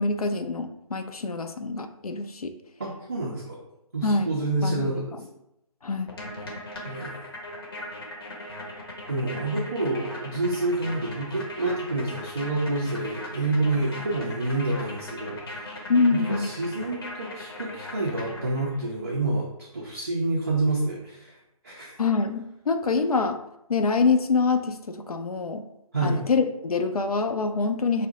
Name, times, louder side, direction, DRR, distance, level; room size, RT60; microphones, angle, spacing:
voice 1, 0.0-2.5 4.0-4.3 4.6-5.0 5.8-6.1 15.9-16.5 22.0-23.4 23.7-25.6 26.0-28.1, left 4 dB, 85° left, 7 dB, 0.4 m, -25 dB
voice 2, 2.8-3.6 3.9-5.1 6.8-7.1 8.7-8.8 9.1-15.6 16.1-21.3 21.6-22.0 25.9-26.2, right 2 dB, 25° right, -5 dB, 0.4 m, -28 dB
sound 1, 6.1-18.9, left 1 dB, 40° left, 0.7 m, -39 dB
2.5 x 2.1 x 3.8 m, 0.84 s
figure-of-eight pair, 150°, 19 cm